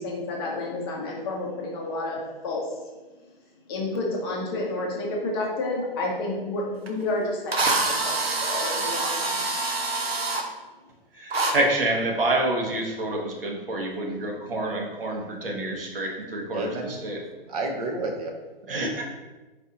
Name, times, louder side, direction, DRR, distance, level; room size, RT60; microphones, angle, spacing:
voice 1, 0.0-2.7 3.7-9.4, left 2 dB, 25° left, -2 dB, 0.6 m, -30 dB
Drill, 6.9-7.0 7.5-10.4 11.3-11.5, right 3 dB, 85° right, 0.7 m, -26 dB
voice 2, 11.2-16.7 17.0-17.2 18.7-19.0, right 2 dB, 65° right, -1 dB, 1.1 m, -27 dB
voice 3, 16.5-17.0 17.5-18.3 18.7-19.0, right 2 dB, 40° right, 2 dB, 0.6 m, -31 dB
4.3 x 2.6 x 3.7 m, 1.2 s
figure-of-eight pair, 125°, 30 cm